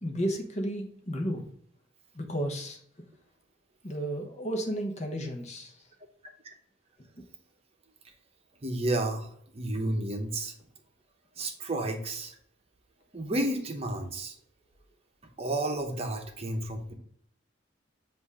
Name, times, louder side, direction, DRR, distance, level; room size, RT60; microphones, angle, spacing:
voice 1, 0.0-1.4 2.1-2.8 3.8-5.7, equal, 35° left, 3 dB, 1.0 m, -32 dB
voice 2, 8.6-10.5 11.4-12.3 13.1-14.3 15.4-16.9, right 1 dB, 30° right, 3 dB, 0.8 m, -31 dB
7.8 x 2.6 x 4.8 m, 0.66 s
head